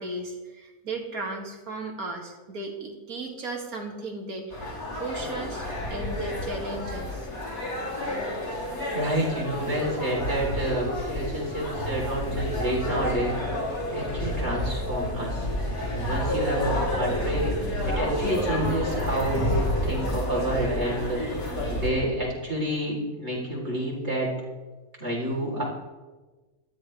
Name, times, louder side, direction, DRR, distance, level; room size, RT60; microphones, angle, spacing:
voice 1, 0.0-7.3, right 2 dB, 75° right, 1 dB, 2.6 m, -36 dB
sound 1, 4.5-21.9, left 1 dB, 70° left, 3.7 m, -29 dB
voice 2, 8.5-13.3 13.9-15.5 15.9-17.4 17.9-21.2 21.7-24.3 25.0-25.6, right 1 dB, 45° right, -2 dB, 4.1 m, -29 dB
18.5 x 13.5 x 3.4 m, 1.2 s
omnidirectional pair, 1.6 m